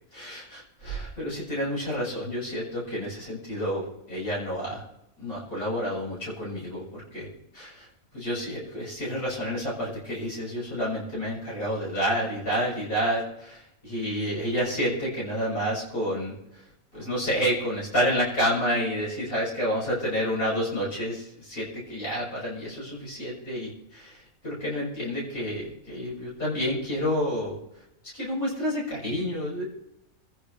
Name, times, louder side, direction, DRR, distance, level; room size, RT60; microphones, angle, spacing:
voice 1, 0.1-4.8 5.2-7.3 7.5-7.9 8.1-16.4 16.9-27.6 28.1-29.6, equal, 70° left, -6 dB, 7.3 m, -29 dB
27.0 x 10.5 x 3.4 m, 0.84 s
omnidirectional pair, 1.5 m